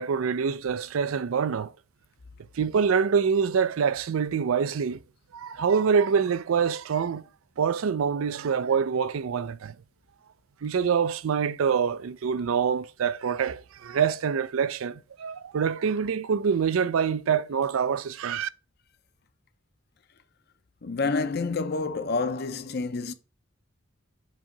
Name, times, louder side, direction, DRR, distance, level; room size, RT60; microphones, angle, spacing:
voice 1, 0.0-1.7 2.5-5.0 5.3-7.2 7.6-9.7 10.6-18.5, right 6 dB, 80° right, 0.4 m, -25 dB
voice 2, 20.8-23.1, left 4 dB, 50° left, 0.6 m, -28 dB
7.5 x 2.8 x 5.7 m
head